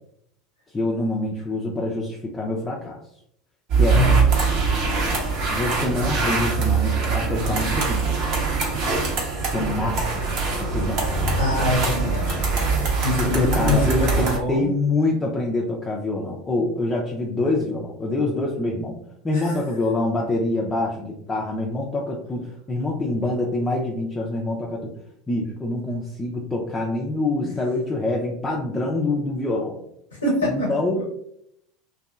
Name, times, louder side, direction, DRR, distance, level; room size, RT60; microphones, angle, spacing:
voice 1, 0.7-3.0 3.7-4.0 5.5-8.1 9.4-10.2 10.6-11.0 13.2-19.0 19.2-24.9 25.3-29.8 30.4-31.0, left 2 dB, 20° left, -2 dB, 0.5 m, -25 dB
sound 1, 3.7-14.4, right 4 dB, 55° right, 0.8 m, -22 dB
voice 2, 11.4-12.5 12.8-14.7 19.3-19.6 27.4-27.5 30.2-30.7 31.0-31.1, left 1 dB, 90° left, -2 dB, 0.7 m, -24 dB
2.7 x 2.3 x 2.3 m, 0.72 s
figure-of-eight pair, 75°, 0 cm